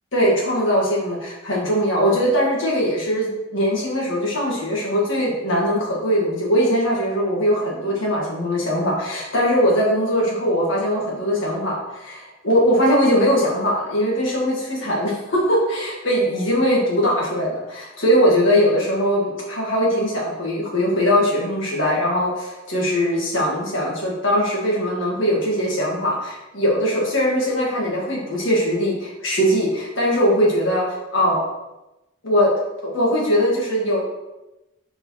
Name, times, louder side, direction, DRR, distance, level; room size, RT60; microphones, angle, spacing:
voice 1, 0.1-31.4 32.2-32.5 32.8-34.0, equal, 65° left, -3 dB, 2.2 m, -21 dB
5.2 x 4.6 x 5.7 m, 0.99 s
head